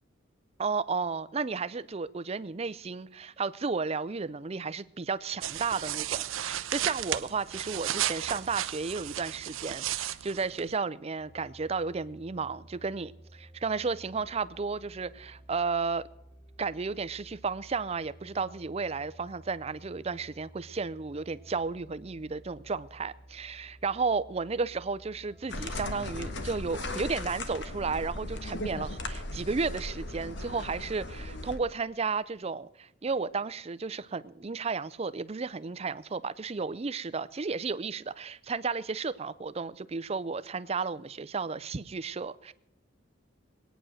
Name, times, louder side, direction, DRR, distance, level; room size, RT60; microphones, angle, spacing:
voice 1, 0.6-16.1 16.6-42.5, right 4 dB, 30° right, 0.5 m, -33 dB
sound 1, 5.4-10.8, right 12 dB, 85° right, 0.6 m, -34 dB
sound 2, 11.2-29.3, right 1 dB, 30° left, 4.4 m, -53 dB
sound 3, 25.5-31.6, left 2 dB, 60° left, 1.4 m, -37 dB
21.0 x 9.1 x 6.4 m
head